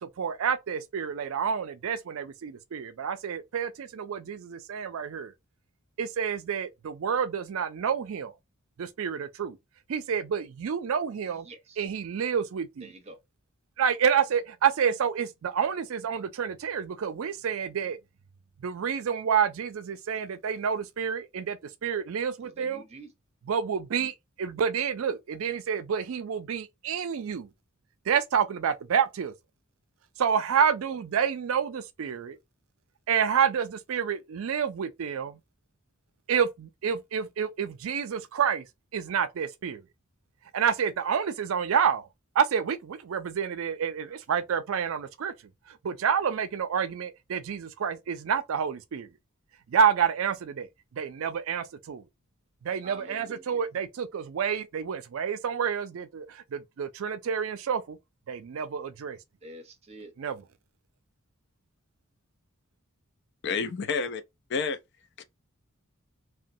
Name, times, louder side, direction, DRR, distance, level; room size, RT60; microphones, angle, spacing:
voice 1, 0.0-5.3 6.0-8.3 8.8-9.6 9.9-11.5 11.8-12.9 13.8-18.0 18.6-22.8 23.4-27.5 28.1-29.3 30.2-32.4 33.1-35.4 36.3-38.7 38.9-39.8 40.5-42.1 42.4-45.3 45.7-49.1 49.7-50.7 50.9-52.0 52.6-58.0 58.3-59.2 60.2-60.4, right 7 dB, 70° right, 0.4 m, -28 dB
voice 2, 11.5-11.8 12.8-13.2 22.4-23.1 52.8-53.5 59.4-60.1, right 2 dB, 30° right, 0.6 m, -46 dB
voice 3, 63.4-64.2 64.5-64.8 65.2-65.3, left 5 dB, 55° left, 0.4 m, -29 dB
3.0 x 2.1 x 2.6 m
head